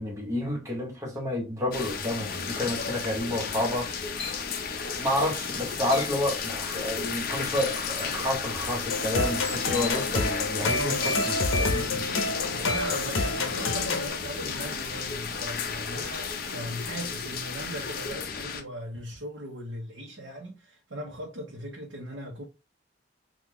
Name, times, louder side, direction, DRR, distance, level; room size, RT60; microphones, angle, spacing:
voice 1, 0.0-3.9 5.0-12.1 12.5-12.6, left 1 dB, 15° right, 1.0 m, -30 dB
sound 1, 1.7-18.6, left 5 dB, 45° left, 0.6 m, -33 dB
sound 2, 4.2-4.4 5.9-6.2 7.6-8.1 9.3-9.6 11.0-11.4, left 4 dB, 30° left, 0.9 m, -38 dB
sound 3, 8.9-14.1, left 2 dB, 85° left, 0.7 m, -28 dB
voice 2, 10.6-11.1 12.5-22.4, right 1 dB, 70° right, 0.9 m, -39 dB
3.7 x 2.4 x 3.0 m
head